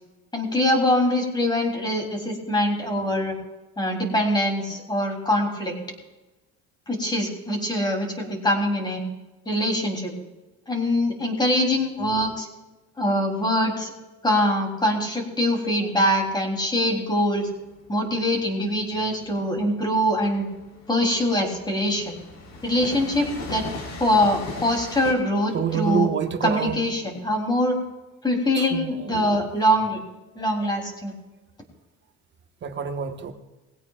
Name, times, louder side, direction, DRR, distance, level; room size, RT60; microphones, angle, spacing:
voice 1, 0.3-3.3 3.8-5.7 6.9-9.0 9.4-10.1 10.7-12.5 13.0-13.9 14.2-17.5 17.9-20.4 20.9-22.2 22.6-23.6 24.0-26.1 26.4-27.8 28.2-30.0 30.3-31.1, left 1 dB, 15° left, 2 dB, 3.3 m, -23 dB
Train, 16.1-25.1, left 2 dB, 55° left, 4.0 m, -39 dB
voice 2, 25.5-26.8 28.5-29.5 32.6-33.3, right 7 dB, 35° right, 6 dB, 1.4 m, -27 dB
20.5 x 16.5 x 2.5 m, 1.1 s
cardioid pair, 135°, 31 cm